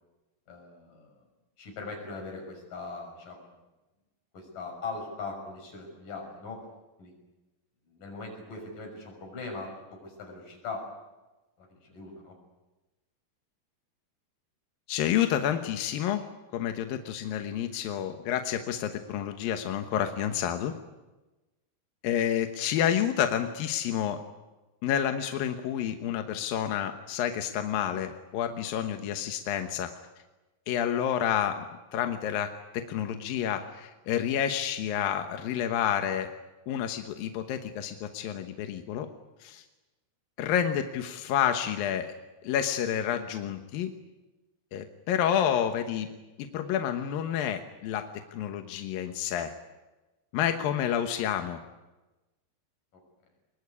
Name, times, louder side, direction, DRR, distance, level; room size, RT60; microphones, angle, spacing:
voice 1, 0.5-1.2 1.6-3.5 4.3-6.6 7.0-7.1 7.9-10.9 11.6-12.3, left 3 dB, 45° left, 2 dB, 7.6 m, -40 dB
voice 2, 14.9-16.2 16.5-20.7 22.0-24.2 24.8-29.9 30.7-31.6 31.9-36.3 36.7-39.1 39.4-39.6 40.4-42.1 42.4-43.9 44.7-46.1 46.4-49.5 50.3-51.6, left 10 dB, 70° left, 6 dB, 2.3 m, -29 dB
24.0 x 21.0 x 9.8 m, 1.1 s
omnidirectional pair, 5.4 m